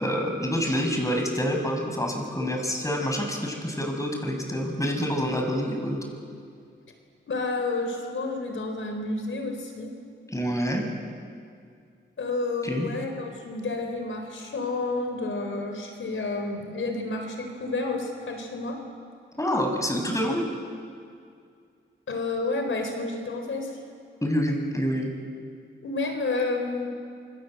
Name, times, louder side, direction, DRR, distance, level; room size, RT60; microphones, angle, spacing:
voice 1, 0.0-6.0 10.3-10.9 12.6-12.9 19.4-20.4 24.2-25.1, equal, 15° left, 3 dB, 7.3 m, -27 dB
voice 2, 7.3-9.9 12.2-18.8 22.1-23.8 25.8-26.9, left 3 dB, 80° left, 4 dB, 4.1 m, -30 dB
27.5 x 27.0 x 8.0 m, 2.3 s
cardioid pair, 60°, 20 cm